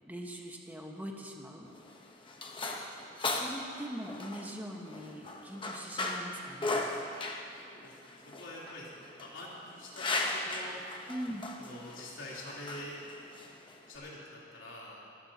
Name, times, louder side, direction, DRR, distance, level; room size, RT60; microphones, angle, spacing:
voice 1, 0.1-1.7 3.2-6.8 11.1-11.4, equal, 10° right, 0 dB, 1.3 m, -42 dB
FX - manipular objetos de cocina, 1.7-14.0, left 2 dB, 25° left, 1.0 m, -38 dB
voice 2, 7.7-10.8 11.6-12.9 13.9-15.0, left 1 dB, 85° left, -6 dB, 3.4 m, -46 dB
23.5 x 13.5 x 2.9 m, 2.4 s
head